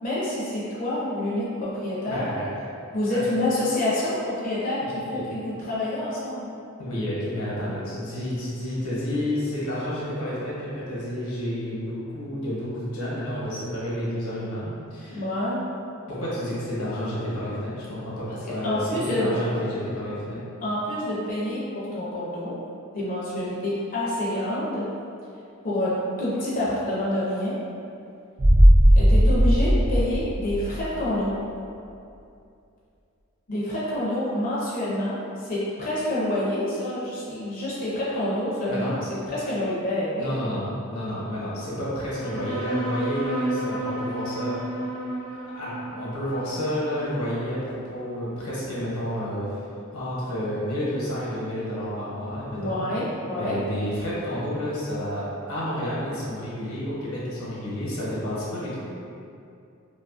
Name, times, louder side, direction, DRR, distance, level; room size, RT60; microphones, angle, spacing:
voice 1, 0.0-2.3 2.9-6.5 15.1-15.6 18.3-19.3 20.6-22.6 22.9-24.9 25.6-27.6 28.9-31.3 33.5-39.0 39.3-40.3 52.5-53.6, left 1 dB, 40° left, -8 dB, 0.4 m, -27 dB
voice 2, 2.1-2.5 3.1-3.2 5.1-5.2 6.8-15.2 16.1-20.4 38.7-38.9 40.2-44.8 45.5-49.6 49.9-52.9 53.4-58.8, equal, 90° left, -8 dB, 0.9 m, -30 dB
sound 1, 28.4-31.1 31.4-31.5, equal, 35° right, 0.3 m, -17 dB
sound 2, 42.2-49.1, right 1 dB, 80° right, 0.8 m, -33 dB
2.6 x 2.3 x 2.4 m, 2.6 s
head